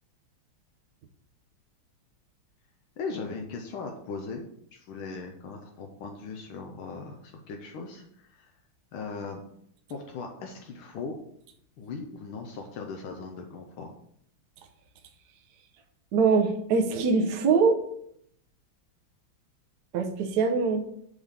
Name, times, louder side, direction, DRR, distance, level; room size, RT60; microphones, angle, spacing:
voice 1, 3.0-4.4 4.7-8.5 8.9-9.4 9.9-11.2 11.8-13.9, left 4 dB, 75° left, 2 dB, 1.6 m, -38 dB
voice 2, 16.1-17.8 19.9-20.9, right 4 dB, 65° right, 4 dB, 1.1 m, -23 dB
7.2 x 3.6 x 5.6 m, 0.70 s
omnidirectional pair, 2.4 m